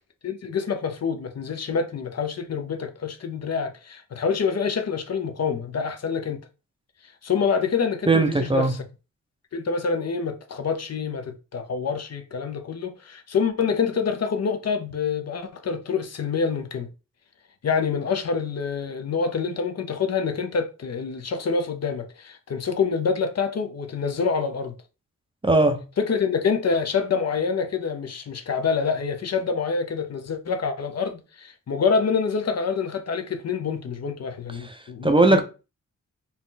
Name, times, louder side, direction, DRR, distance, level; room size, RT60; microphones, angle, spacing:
voice 1, 0.2-6.4 7.0-8.8 9.5-16.9 17.6-24.7 26.0-35.4, left 5 dB, 55° left, 0.7 m, -26 dB
voice 2, 8.1-8.7 25.4-25.8 34.6-35.4, right 2 dB, 15° right, 0.5 m, -19 dB
4.2 x 2.4 x 3.8 m
wide cardioid pair, 110°, 31 cm